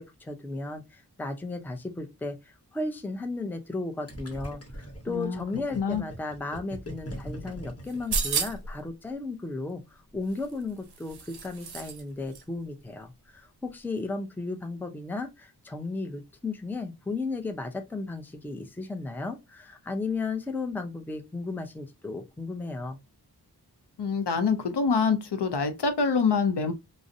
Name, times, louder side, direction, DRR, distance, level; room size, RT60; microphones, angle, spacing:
voice 1, 0.0-23.0, left 3 dB, 5° left, 0.4 m, -35 dB
Gurgling, 4.1-8.8, equal, 35° left, 0.9 m, -41 dB
voice 2, 5.1-5.4 5.8-6.0 24.0-26.7, left 5 dB, 80° left, 0.6 m, -25 dB
sound 1, 7.9-8.8 10.3-12.0 12.3-12.4, right 4 dB, 70° right, 0.5 m, -32 dB
2.5 x 2.0 x 2.6 m
wide cardioid pair, 40°, 40 cm